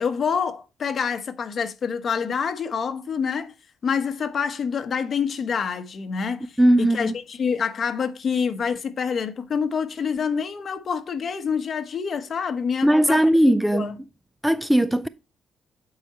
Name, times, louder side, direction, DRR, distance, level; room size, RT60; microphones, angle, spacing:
voice 1, 0.0-3.5 3.8-13.9, left 6 dB, 50° left, 1.1 m, -27 dB
voice 2, 6.6-7.2 12.8-14.0 14.4-15.1, right 1 dB, 5° right, 0.3 m, -18 dB
7.9 x 4.9 x 4.2 m
cardioid pair, 90°, 0 cm